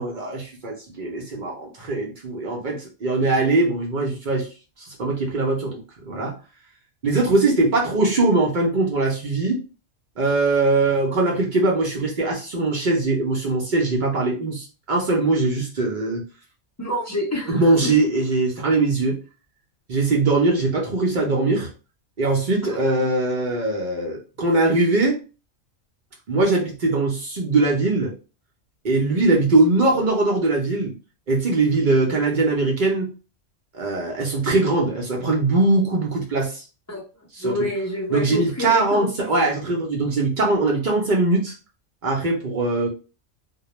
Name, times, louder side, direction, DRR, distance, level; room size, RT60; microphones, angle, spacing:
voice 1, 0.0-4.5 4.8-5.8 6.1-6.3 7.0-9.6 10.2-16.2 17.5-19.2 19.9-21.7 22.2-25.2 26.3-28.1 28.8-30.9 31.3-33.1 33.7-36.6 37.3-37.7 38.1-41.5 42.0-42.9, right 2 dB, 50° right, -1 dB, 0.6 m, -21 dB
voice 2, 16.8-17.9 22.7-22.8 36.9-37.0 37.4-39.3, left 1 dB, 25° left, -3 dB, 0.4 m, -28 dB
2.2 x 2.0 x 2.9 m, 0.33 s
omnidirectional pair, 1.3 m